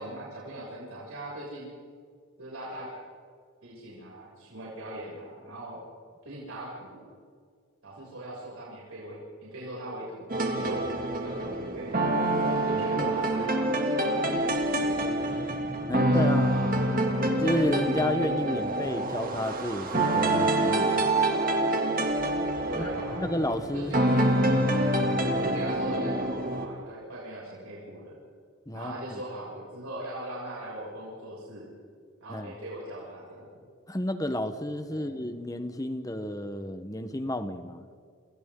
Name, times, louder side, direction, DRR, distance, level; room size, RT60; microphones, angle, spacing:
voice 1, 0.0-1.7 2.4-2.9 3.6-5.8 6.2-7.1 7.8-10.8 11.2-12.0 12.6-15.4 15.8-16.8 22.6-23.3 23.7-24.2 25.1-28.2 28.7-31.7 32.2-33.7 34.9-35.1, right 1 dB, 85° right, -6 dB, 6.9 m, -39 dB
sound 1, 10.3-26.7, right 1 dB, 40° right, 2.6 m, -26 dB
voice 2, 15.9-16.5 17.4-21.0 22.7-22.9 23.2-23.9 24.5-24.8 28.7-29.2 32.3-32.5 33.9-37.8, left 1 dB, 15° left, 9 dB, 1.1 m, -31 dB
29.0 x 29.0 x 3.9 m, 2.1 s
head